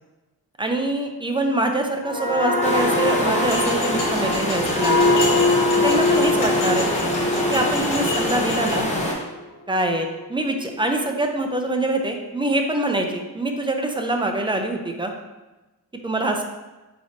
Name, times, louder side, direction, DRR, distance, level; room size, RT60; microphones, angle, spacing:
voice 1, 0.6-5.3 5.8-6.9 7.5-8.9 9.7-15.1 16.0-16.4, right 1 dB, 15° right, 3 dB, 0.3 m, -24 dB
sound 1, 2.0-9.5 9.9-10.1, left 2 dB, 50° left, 1.1 m, -23 dB
sound 2, 2.6-9.1, left 1 dB, 15° left, 0.6 m, -25 dB
sound 3, 3.5-8.8, left 2 dB, 85° left, 1.4 m, -31 dB
5.1 x 3.9 x 2.5 m, 1.1 s
wide cardioid pair, 155°, 40 cm